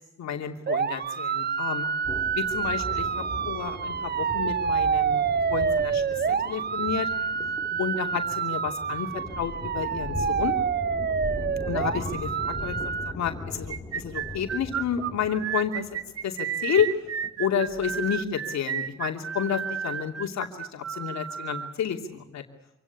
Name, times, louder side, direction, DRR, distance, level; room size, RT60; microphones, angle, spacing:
voice 1, 0.0-1.9 2.3-7.1 7.8-10.6 11.7-15.8 16.2-16.9 17.4-22.4, left 8 dB, 65° left, 3 dB, 2.9 m, -30 dB
sound 1, 0.7-13.1, right 6 dB, 35° right, 0.8 m, -28 dB
sound 2, 2.0-18.2, left 2 dB, 5° left, 4.1 m, -39 dB
sound 3, 13.7-21.7, right 9 dB, 50° right, 1.1 m, -32 dB
26.5 x 17.0 x 9.9 m, 0.92 s
cardioid pair, 90°, 30 cm